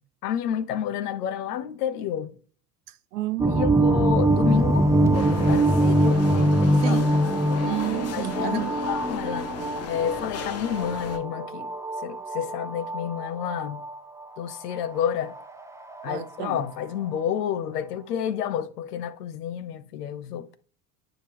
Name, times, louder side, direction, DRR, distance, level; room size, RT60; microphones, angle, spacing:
voice 1, 0.2-2.3 3.4-7.0 8.1-9.5 9.9-11.8 12.0-13.8 14.4-15.4 16.0-20.6, left 9 dB, 70° left, 0.8 m, -30 dB
voice 2, 2.9-4.0 6.8-7.1 7.6-8.7 16.1-16.6, right 16 dB, 70° right, 0.7 m, -31 dB
sound 1, 3.4-16.8, right 1 dB, 5° right, 0.6 m, -24 dB
sound 2, 5.1-11.2, left 7 dB, 30° left, 0.9 m, -36 dB
9.0 x 5.0 x 3.0 m
figure-of-eight pair, 70°, 49 cm